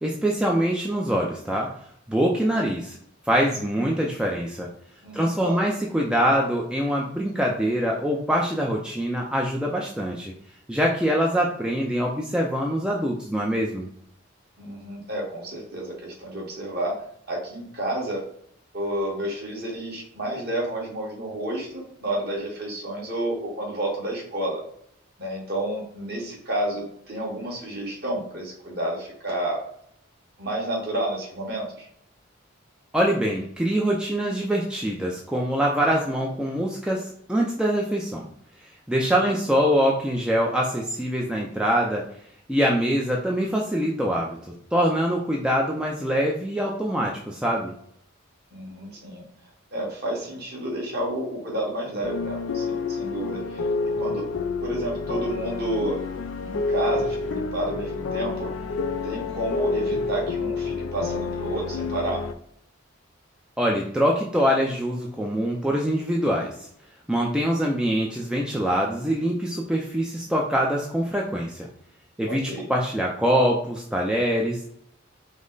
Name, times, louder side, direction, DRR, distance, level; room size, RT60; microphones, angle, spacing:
voice 1, 0.0-1.7 2.1-3.0 3.3-4.7 5.1-10.3 10.7-13.9 32.9-38.3 38.9-42.0 42.5-44.4 44.7-47.7 63.6-66.5 67.1-71.7 72.2-72.4 72.7-74.8, equal, 5° right, -2 dB, 0.4 m, -24 dB
voice 2, 5.0-5.6 14.6-16.9 17.3-18.2 18.7-24.6 25.2-29.6 30.4-31.9 39.1-39.3 48.5-49.2 49.7-53.7 54.0-54.2 54.6-56.0 56.4-58.5 59.0-62.2 72.2-72.7, right 1 dB, 50° right, -3 dB, 1.5 m, -30 dB
sound 1, 52.0-62.3, left 4 dB, 85° left, 0.4 m, -29 dB
5.1 x 2.1 x 3.9 m, 0.66 s
head